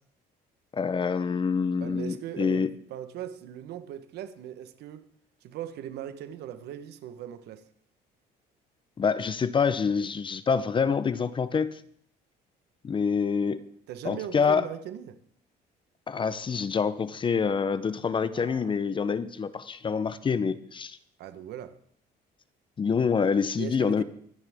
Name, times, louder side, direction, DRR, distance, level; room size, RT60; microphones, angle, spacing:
voice 1, 0.7-2.7 9.0-11.8 12.8-13.7 14.0-14.7 16.1-21.0 22.8-24.0, left 6 dB, 30° left, 0.7 m, -26 dB
voice 2, 1.8-5.1 5.4-7.6 13.9-15.2 18.3-18.7 21.2-21.7 23.6-24.0, right 10 dB, 75° right, 1.1 m, -39 dB
23.0 x 9.9 x 3.6 m
cardioid pair, 110°, 17 cm